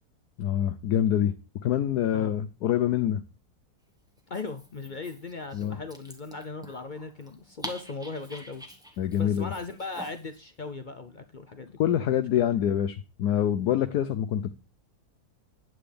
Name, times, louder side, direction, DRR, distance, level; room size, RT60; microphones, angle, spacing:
voice 1, 0.4-1.3 1.6-3.2 5.5-5.8 9.0-9.5 11.8-14.5, left 10 dB, 80° left, 1.2 m, -25 dB
Dog, 4.2-10.4, equal, 5° right, 1.1 m, -46 dB
voice 2, 4.3-8.6 9.2-12.2, left 3 dB, 50° left, 0.6 m, -38 dB
9.5 x 8.6 x 3.4 m
omnidirectional pair, 1.7 m